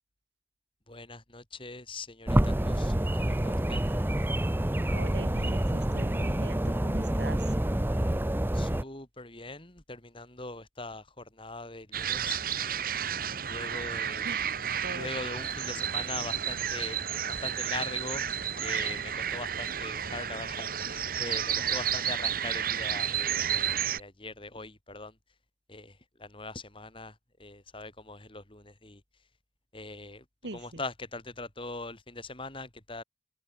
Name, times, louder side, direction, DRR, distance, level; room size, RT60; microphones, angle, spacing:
voice 1, 0.9-3.8 8.5-12.4 13.4-14.3 14.9-17.0 17.3-18.2 18.6-25.1 25.7-29.0 29.7-30.2 30.5-33.0, left 3 dB, 30° left, 4.9 m, -41 dB
sound 1, 2.3-8.8, right 1 dB, 10° right, 0.7 m, -27 dB
voice 2, 4.9-7.5 14.2-15.1 30.4-30.8, right 2 dB, 80° right, 2.4 m, -42 dB
sound 2, 11.9-24.0, right 9 dB, 55° right, 1.4 m, -31 dB
head